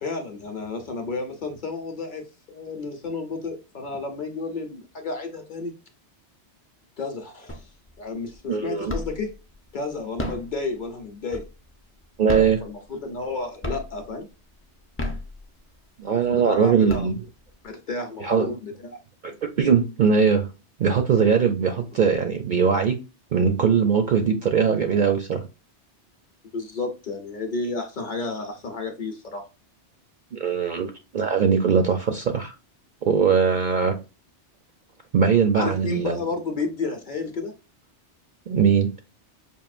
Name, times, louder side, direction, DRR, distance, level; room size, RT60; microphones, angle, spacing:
voice 1, 0.0-2.2 2.5-5.7 7.0-7.7 8.0-9.3 9.7-11.4 12.3-14.3 16.1-17.1 17.6-19.0 26.5-29.4 35.5-37.5, left 3 dB, 50° left, 4 dB, 0.8 m, -31 dB
sound 1, 7.5-8.0 8.3-9.3 10.0-11.8 12.2-13.3 13.6-14.2 14.8-15.8 16.3-16.4 16.7-17.6, left 1 dB, 20° left, 0.3 m, -33 dB
voice 2, 8.5-8.9 12.2-12.6 16.0-17.2 18.2-18.5 19.2-20.5 20.8-23.0 23.3-25.4 30.3-32.5 33.1-34.0 35.1-36.2 38.5-38.9, right 6 dB, 60° right, 6 dB, 0.5 m, -21 dB
5.3 x 2.5 x 2.4 m, 0.30 s
omnidirectional pair, 1.2 m